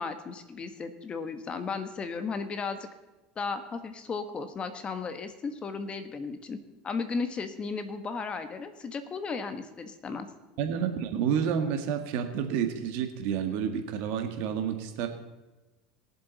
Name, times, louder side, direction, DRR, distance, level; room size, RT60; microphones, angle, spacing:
voice 1, 0.0-2.8 3.4-6.6 6.8-10.3, left 4 dB, 30° left, 9 dB, 1.3 m, -35 dB
voice 2, 10.6-15.1, right 8 dB, 65° right, 6 dB, 1.7 m, -29 dB
21.5 x 7.4 x 4.1 m, 1.1 s
supercardioid pair, 110°, 4 cm